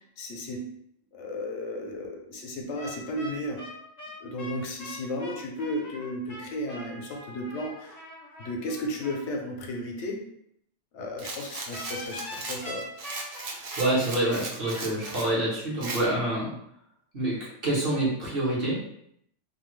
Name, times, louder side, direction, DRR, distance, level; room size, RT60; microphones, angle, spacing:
voice 1, 0.2-0.6 1.1-3.6 4.2-8.0 8.4-10.2 10.9-12.9, left 1 dB, 80° left, 1 dB, 0.9 m, -34 dB
sound 1, 2.8-9.2 11.7-15.4, equal, 45° left, 0.6 m, -42 dB
Rattle, 11.2-15.3 15.8-16.0, right 3 dB, 75° right, 0.3 m, -37 dB
voice 2, 13.5-16.5 17.1-18.8, right 1 dB, 55° right, -6 dB, 1.1 m, -27 dB
2.6 x 2.2 x 3.1 m, 0.73 s
omnidirectional pair, 1.2 m